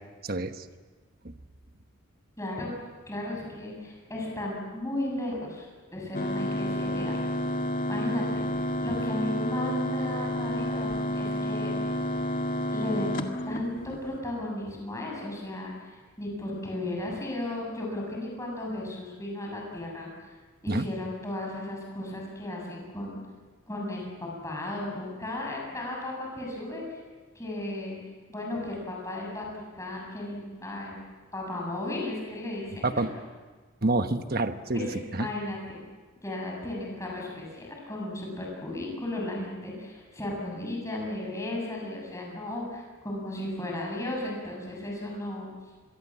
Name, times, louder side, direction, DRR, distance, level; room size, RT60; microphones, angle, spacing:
voice 1, 0.2-0.6 1.2-1.3 9.0-9.1 20.7-20.9 32.8-33.1 33.8-34.9 35.1-35.3, right 2 dB, 45° right, 9 dB, 1.2 m, -28 dB
voice 2, 2.4-2.7 3.1-7.2 7.9-8.4 8.8-11.7 12.7-13.2 13.5-20.3 20.6-23.2 23.7-27.0 27.4-28.0 28.3-29.5 29.7-31.0 31.3-33.0 34.7-35.8 36.2-45.5, left 1 dB, 15° left, -1 dB, 7.5 m, -35 dB
sound 1, 6.1-14.2, left 1 dB, 40° left, 1.9 m, -30 dB
26.5 x 23.0 x 7.5 m, 1.4 s
head